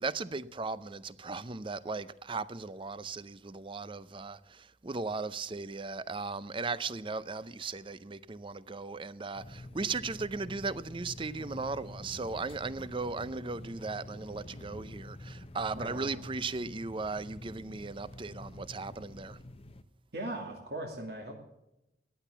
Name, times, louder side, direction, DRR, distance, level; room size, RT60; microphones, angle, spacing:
voice 1, 0.0-19.4, right 4 dB, 30° right, 0.5 m, -37 dB
sound 1, 9.3-19.8, left 1 dB, 30° left, 0.7 m, -47 dB
voice 2, 15.8-16.2 20.1-21.3, right 1 dB, 60° right, 2.3 m, -39 dB
15.0 x 10.0 x 6.8 m
head